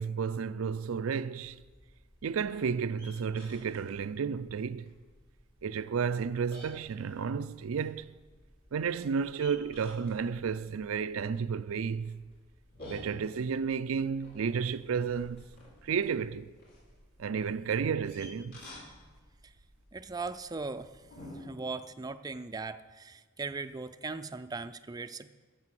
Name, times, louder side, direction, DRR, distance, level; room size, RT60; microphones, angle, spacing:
voice 1, 0.0-1.6 2.2-4.9 5.6-8.1 8.7-12.3 12.9-15.4 15.8-16.5 17.2-18.6, right 6 dB, 75° right, 0.4 m, -32 dB
sound 1, 1.4-21.4, left 1 dB, 50° left, 5.0 m, -54 dB
voice 2, 19.9-21.0 21.3-25.3, right 4 dB, 20° right, 0.4 m, -39 dB
15.5 x 6.9 x 7.5 m
head